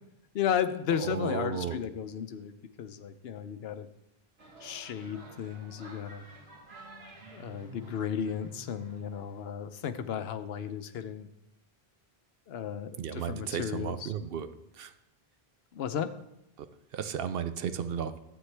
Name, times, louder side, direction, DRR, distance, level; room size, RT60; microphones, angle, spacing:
voice 1, 0.3-2.5 2.8-3.9 4.6-6.2 7.3-11.3 12.5-14.1 15.7-16.1, left 8 dB, 80° left, 11 dB, 0.9 m, -34 dB
voice 2, 1.0-1.8 13.0-14.5 14.7-14.9 16.6-16.7 16.9-18.2, right 8 dB, 70° right, 11 dB, 0.8 m, -34 dB
sound 1, 4.4-9.5, right 2 dB, 85° right, 1.7 m, -51 dB
12.0 x 7.9 x 3.3 m, 0.86 s
omnidirectional pair, 1.0 m